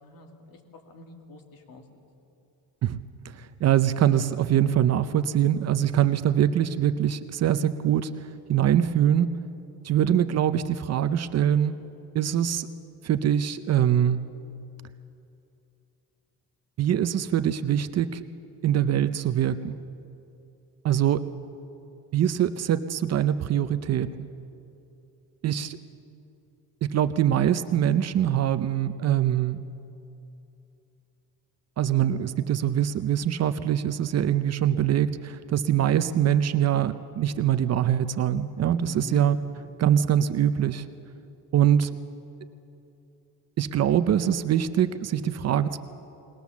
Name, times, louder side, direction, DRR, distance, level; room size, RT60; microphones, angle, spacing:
voice 1, 0.0-1.9 9.9-10.3 38.9-39.2, left 3 dB, 65° left, 3 dB, 2.4 m, -45 dB
voice 2, 3.6-8.1 8.5-9.3 9.8-11.7 12.1-12.7 13.0-14.2 16.8-18.2 18.6-19.8 20.8-21.2 22.1-24.3 25.4-25.8 26.8-29.6 31.8-39.4 39.8-40.9 41.5-41.9 43.6-45.8, right 10 dB, 45° right, 11 dB, 0.6 m, -23 dB
20.5 x 19.5 x 7.2 m, 2.8 s
cardioid pair, 170°, 37 cm